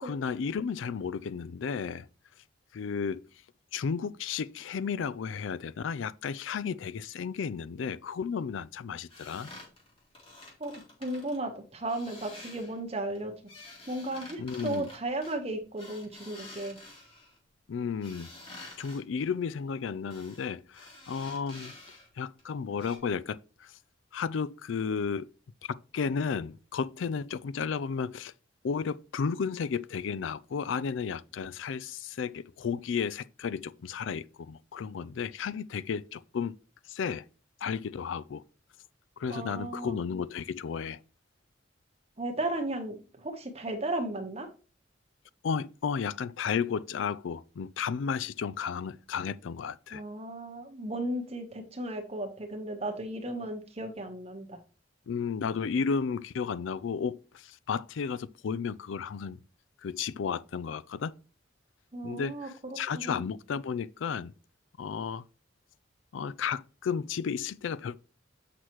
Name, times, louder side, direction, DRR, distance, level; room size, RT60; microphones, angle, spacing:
voice 1, 0.0-2.1 2.7-3.2 3.7-9.5 14.4-14.9 17.7-18.3 18.8-21.7 22.2-23.7 24.1-25.3 25.6-28.3 28.6-36.5 36.9-37.2 37.6-38.4 39.2-41.0 45.4-50.0 55.1-59.4 59.8-61.1 62.0-64.3 64.8-65.2 66.1-68.0, left 6 dB, 80° left, 0.4 m, -33 dB
sound 1, 9.1-11.4 11.8-12.8 13.2-17.4 18.0-19.0 20.1-20.5 20.7-22.1 22.4-22.5 22.8-23.0, left 2 dB, 30° left, 2.3 m, -49 dB
voice 2, 10.6-13.3 13.9-16.8 39.3-40.0 42.2-44.5 49.9-54.6 61.9-63.2, right 1 dB, 30° right, 1.2 m, -35 dB
8.1 x 5.9 x 3.1 m
head